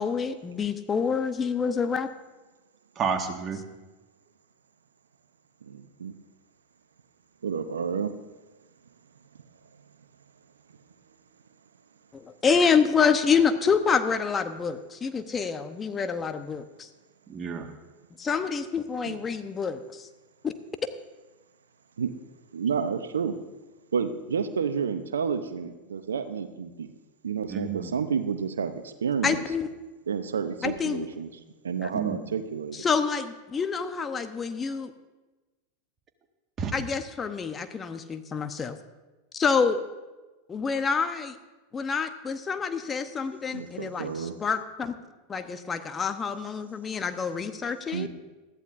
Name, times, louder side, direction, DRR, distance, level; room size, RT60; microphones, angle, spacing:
voice 1, 0.0-2.1 12.1-16.9 18.2-20.1 20.4-20.5 29.2-29.7 30.6-31.0 31.8-31.9 32.7-34.9 36.7-38.8 39.3-39.8 40.5-41.4 41.7-44.9 45.3-48.1, left 5 dB, 25° left, 9 dB, 0.8 m, -27 dB
voice 2, 3.0-3.6 17.3-17.7 27.5-27.9 31.9-32.2 36.6-36.8, right 6 dB, 30° right, 4 dB, 1.7 m, -30 dB
voice 3, 5.6-6.1 7.4-8.1 19.1-19.2 22.0-22.1 22.5-23.3 23.9-26.9 27.2-29.4 30.1-31.3 31.6-32.9 43.5-44.3 47.9-48.1, right 6 dB, 80° right, 10 dB, 0.7 m, -30 dB
20.0 x 14.0 x 2.6 m, 1.2 s
hypercardioid pair, 90°, 0 cm